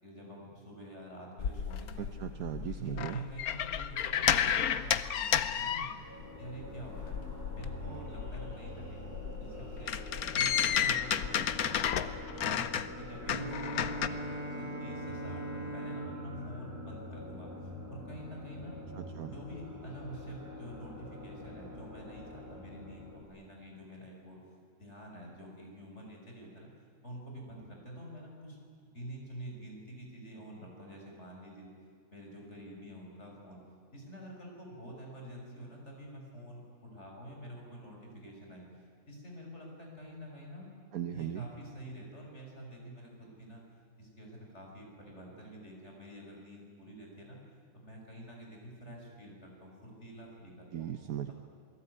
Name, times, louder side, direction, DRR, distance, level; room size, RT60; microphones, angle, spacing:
voice 1, 0.0-2.3 2.8-6.0 6.4-7.2 7.5-10.0 10.3-12.6 13.0-17.5 17.9-18.8 19.3-24.4 24.8-26.7 27.0-28.6 28.9-31.7 32.1-33.6 33.9-38.7 39.1-40.7 41.1-43.6 44.0-47.4 47.7-50.9 51.3-51.4, equal, 50° left, 0 dB, 6.3 m, -47 dB
sound 1, 1.4-6.4 6.6-14.1, left 9 dB, 85° left, 1.4 m, -32 dB
voice 2, 2.0-3.2 18.9-19.3 40.9-41.5 50.7-51.3, right 10 dB, 80° right, 7 dB, 1.4 m, -38 dB
sound 2, 5.9-23.2, equal, 10° right, 4.8 m, -46 dB
Bowed string instrument, 13.2-17.9, equal, 25° left, 2.6 m, -41 dB
27.5 x 19.0 x 9.7 m, 2.2 s
omnidirectional pair, 1.5 m